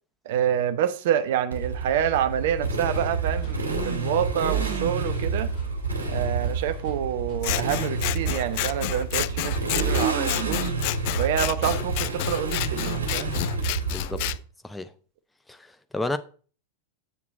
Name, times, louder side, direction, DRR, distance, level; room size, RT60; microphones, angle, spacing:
voice 1, 0.2-5.5 6.1-10.7 11.2-13.3, right 10 dB, 55° right, 0.9 m, -27 dB
Motorcycle, 1.5-14.4, right 4 dB, 75° right, 2.4 m, -29 dB
sound 1, 2.5-13.8, left 4 dB, 30° left, 4.2 m, -48 dB
Scissors, 7.4-14.4, left 19 dB, 50° left, 0.3 m, -30 dB
voice 2, 13.9-14.2 14.6-14.9 15.5-16.2, left 2 dB, 5° left, 0.7 m, -31 dB
8.3 x 7.1 x 4.1 m
figure-of-eight pair, 90°, 0 cm